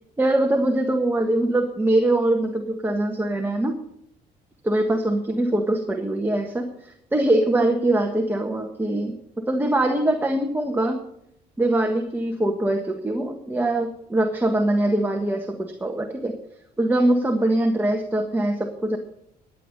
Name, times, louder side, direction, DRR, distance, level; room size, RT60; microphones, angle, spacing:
voice 1, 0.2-3.8 4.6-11.0 11.6-16.3 16.8-19.0, right 1 dB, 10° right, 3 dB, 1.6 m, -23 dB
14.5 x 9.9 x 6.7 m, 0.75 s
cardioid pair, 110°, 17 cm